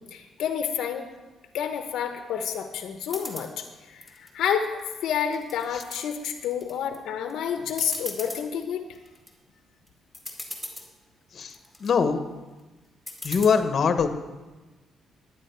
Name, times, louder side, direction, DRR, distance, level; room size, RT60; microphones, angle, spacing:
voice 1, 0.1-1.1 1.5-8.8, left 8 dB, 80° left, 6 dB, 0.8 m, -29 dB
sound 1, 3.1-3.5 4.0-4.8 5.2-6.0 6.5-7.0 7.3-7.4 7.7-8.4 8.9-9.3 9.9-10.0 10.1-10.9 11.4-11.9 13.1-13.5, left 1 dB, 5° left, 2.1 m, -38 dB
voice 2, 11.3-12.2 13.2-14.1, left 6 dB, 50° left, 8 dB, 1.0 m, -23 dB
11.0 x 9.9 x 4.5 m, 1.2 s
cardioid pair, 90°, 0 cm